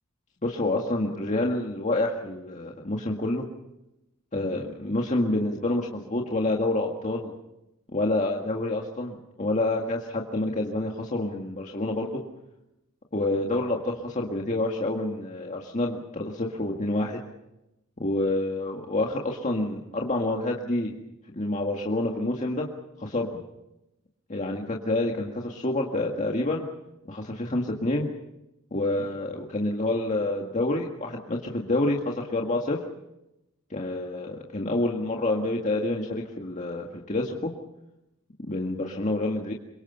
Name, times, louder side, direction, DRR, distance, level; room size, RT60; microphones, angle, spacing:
voice 1, 0.4-3.4 4.3-7.3 7.9-12.2 13.1-17.2 18.0-20.9 21.4-22.7 23.0-23.3 24.3-26.7 27.1-28.1 28.7-32.8 33.7-37.5 38.4-39.5, left 2 dB, 35° left, 0 dB, 1.9 m, -28 dB
27.5 x 24.0 x 5.6 m, 0.91 s
head